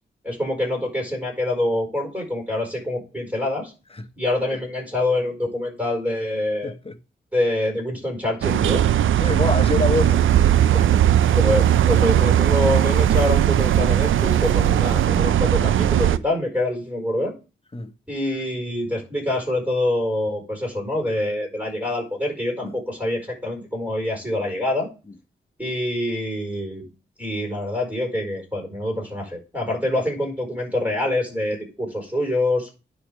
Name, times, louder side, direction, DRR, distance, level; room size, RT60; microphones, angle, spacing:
voice 1, 0.2-3.7 4.2-6.7 7.3-8.9 11.3-17.3 18.1-24.9 25.6-26.8 27.2-32.7, left 1 dB, 5° right, 4.7 m, -25 dB
voice 2, 6.6-7.0 9.2-11.0 17.7-17.9 22.6-22.7, left 3 dB, 25° left, 1.0 m, -27 dB
sound 1, 8.4-16.2, right 11 dB, 70° right, 0.4 m, -18 dB
10.0 x 3.4 x 6.5 m
supercardioid pair, 40°, 21 cm